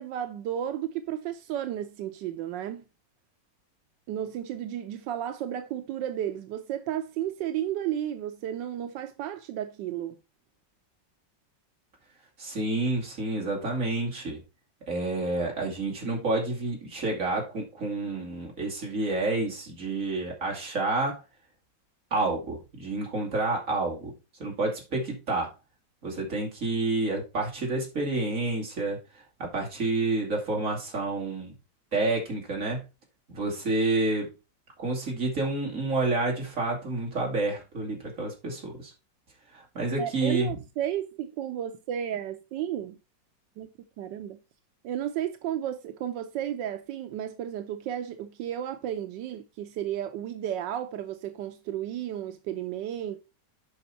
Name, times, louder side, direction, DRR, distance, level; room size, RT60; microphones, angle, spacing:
voice 1, 0.0-2.8 4.1-10.1 40.0-43.0 43.6-43.7 44.0-44.4 44.8-53.2, right 11 dB, 85° right, 1.4 m, -33 dB
voice 2, 12.4-14.4 14.9-21.2 22.1-24.1 24.4-25.5 26.0-29.0 29.4-31.5 31.9-32.8 33.3-34.3 34.8-38.9 39.5-40.5, right 2 dB, 45° right, 3.0 m, -29 dB
8.1 x 5.5 x 4.3 m
omnidirectional pair, 1.9 m